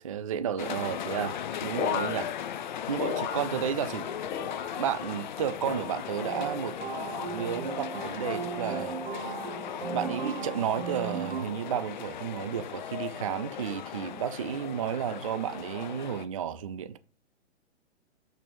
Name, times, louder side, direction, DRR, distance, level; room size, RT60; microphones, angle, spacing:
voice 1, 0.0-2.3 2.9-4.1 4.8-6.8 7.3-9.0 9.9-17.0, right 9 dB, 30° right, 0.4 m, -32 dB
sound 1, 0.6-16.3, left 9 dB, 40° left, 0.5 m, -37 dB
sound 2, 1.8-4.0 4.3-5.1 5.6-6.3 6.9-7.4 8.3-8.7 9.6-9.9, left 7 dB, 20° left, 0.9 m, -36 dB
sound 3, 6.2-11.4, right 7 dB, 50° right, 1.3 m, -37 dB
6.8 x 6.5 x 3.1 m
figure-of-eight pair, 115°, 35 cm